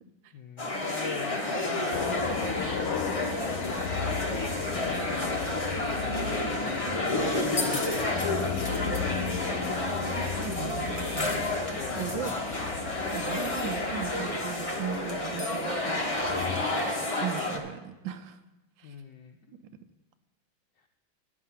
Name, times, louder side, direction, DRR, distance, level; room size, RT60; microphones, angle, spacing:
voice 1, 0.3-8.7 11.7-12.6 18.8-19.6, left 6 dB, 75° left, 3 dB, 1.1 m, -42 dB
sound 1, 0.6-17.6, left 2 dB, 35° left, 0.5 m, -30 dB
sound 2, 1.9-16.7, left 7 dB, 90° left, 1.5 m, -37 dB
voice 2, 10.0-11.5 12.0-12.4 13.1-16.2 17.2-18.4 18.8-18.9, right 9 dB, 75° right, 10 dB, 1.3 m, -38 dB
10.5 x 7.4 x 5.6 m, 1.0 s
omnidirectional pair, 2.2 m